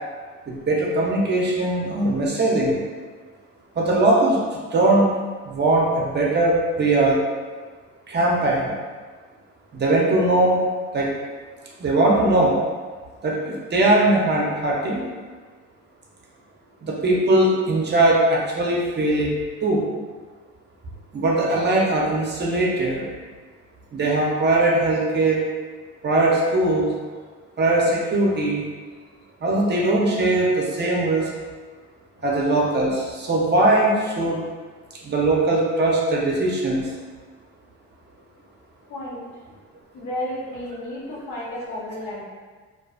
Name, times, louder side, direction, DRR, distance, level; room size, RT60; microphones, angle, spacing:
voice 1, 0.5-2.8 3.8-4.4 4.7-5.1 5.4-7.2 8.1-8.8 9.7-10.6 10.9-11.1 11.8-12.6 13.2-15.1 16.8-19.3 19.6-19.8 21.1-23.1 23.9-25.4 26.0-26.9 27.6-28.6 29.4-31.3 32.2-34.4 35.0-36.9, right 2 dB, 35° right, -3 dB, 0.6 m, -20 dB
voice 2, 38.9-39.3 39.9-42.2, left 1 dB, 75° left, -5 dB, 0.8 m, -32 dB
2.4 x 2.3 x 2.3 m, 1.5 s
cardioid pair, 90°, 30 cm